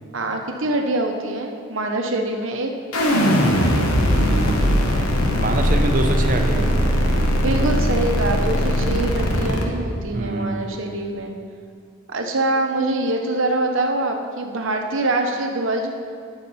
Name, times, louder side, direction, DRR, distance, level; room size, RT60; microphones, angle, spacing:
voice 1, 0.1-2.7 7.4-11.3 12.1-15.9, right 2 dB, 65° right, 3 dB, 0.9 m, -24 dB
sound 1, 2.9-9.6, equal, 85° left, 1.1 m, -19 dB
voice 2, 4.1-4.6 5.4-7.0 10.1-10.6, right 1 dB, 40° right, 3 dB, 0.8 m, -25 dB
10.5 x 7.3 x 4.2 m, 2.2 s
head